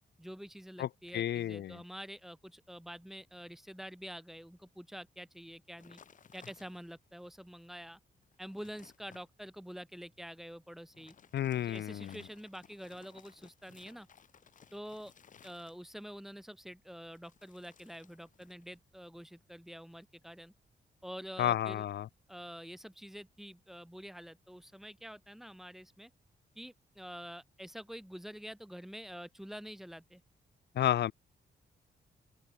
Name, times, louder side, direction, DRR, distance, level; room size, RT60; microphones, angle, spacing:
voice 1, 0.2-6.0 6.3-8.0 8.4-11.1 11.6-14.1 14.7-15.1 15.4-20.5 21.0-21.8 22.3-26.1 26.5-30.2, equal, ahead, 1.4 m, -47 dB
voice 2, 1.1-1.8 11.3-12.2 21.4-22.1 30.7-31.1, left 11 dB, 70° left, 0.7 m, -31 dB
sound 1, 5.8-7.1 7.6-7.7 8.1-9.3 10.8-16.1 17.1-18.8 19.1-19.5, left 7 dB, 45° left, 3.4 m, -60 dB
open air
wide cardioid pair, 175°, 18 cm